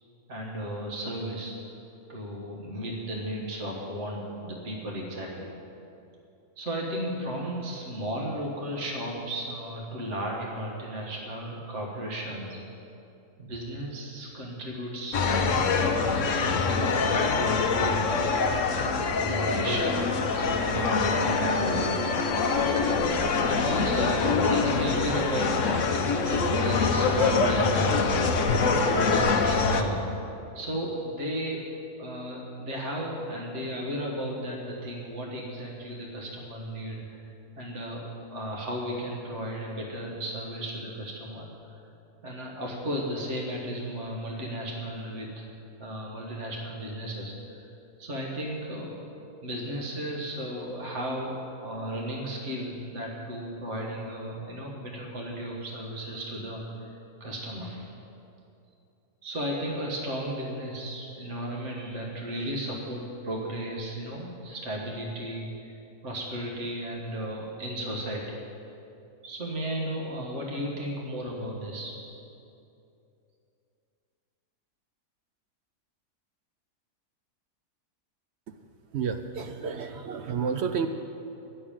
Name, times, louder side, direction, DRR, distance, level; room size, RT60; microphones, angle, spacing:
voice 1, 0.3-1.6 2.1-5.5 6.6-12.6 13.4-18.9 19.2-21.9 23.4-30.0 30.5-31.6 32.0-37.2 37.6-41.8 42.2-45.5 45.8-47.3 48.0-49.1 49.4-56.6 57.2-57.9 59.2-65.7 66.0-68.4 69.2-71.9, equal, 50° right, -2 dB, 1.8 m, -34 dB
sound 1, 15.1-29.8, left 4 dB, 60° left, 1.0 m, -25 dB
voice 2, 78.9-80.9, right 6 dB, 70° right, 7 dB, 0.6 m, -30 dB
11.0 x 6.8 x 8.9 m, 2.7 s
omnidirectional pair, 1.6 m